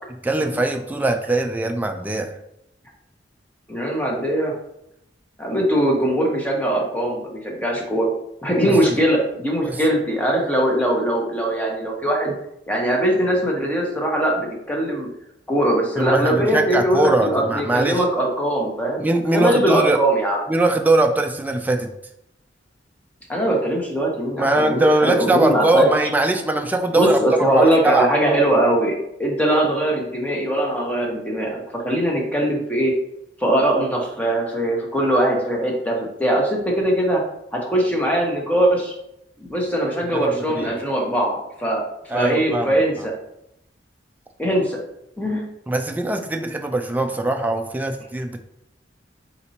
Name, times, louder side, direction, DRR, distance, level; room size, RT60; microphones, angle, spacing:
voice 1, 0.2-2.3 8.7-9.0 9.6-9.8 16.0-18.0 19.0-20.0 20.5-21.9 24.4-28.1 40.1-40.7 42.1-42.8 45.7-48.4, right 2 dB, 10° right, 4 dB, 0.3 m, -21 dB
voice 2, 3.7-4.5 5.4-8.1 8.4-12.4 12.7-15.1 15.5-20.4 23.3-25.9 26.9-28.9 29.2-32.9 33.4-37.2 37.5-38.9 39.5-41.8 42.1-43.1 44.4-44.8 45.2-45.4, right 1 dB, 10° left, -1 dB, 0.9 m, -21 dB
4.2 x 4.2 x 2.8 m, 0.79 s
head